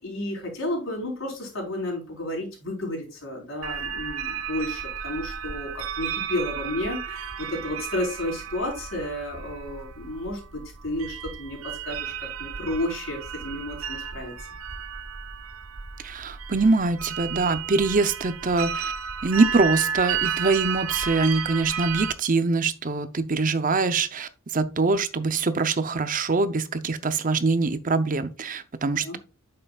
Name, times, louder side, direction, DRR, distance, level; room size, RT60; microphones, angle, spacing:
voice 1, 0.0-14.3 29.0-29.2, left 1 dB, 60° left, 4.3 m, -32 dB
sound 1, 3.6-22.1, right 7 dB, 75° right, 0.8 m, -33 dB
voice 2, 16.0-18.9 19.2-29.2, right 3 dB, 40° right, 0.6 m, -24 dB
8.9 x 6.8 x 2.3 m
head